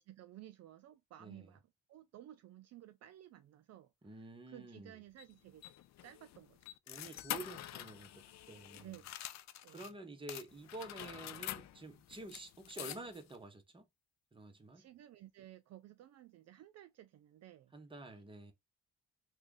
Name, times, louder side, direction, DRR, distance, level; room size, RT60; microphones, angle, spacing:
voice 1, 0.0-1.6 1.9-5.7 6.0-6.6 8.7-9.0 9.6-9.9 14.7-17.7, right 13 dB, 60° right, 0.4 m, -55 dB
voice 2, 1.2-1.5 4.0-5.0 6.9-9.0 9.7-13.9 14.3-14.9 17.7-18.5, right 2 dB, 15° right, 0.9 m, -49 dB
sound 1, 5.2-9.9 10.3-13.4, left 13 dB, 65° left, 0.5 m, -47 dB
3.0 x 2.3 x 3.8 m
cardioid pair, 90°, 30 cm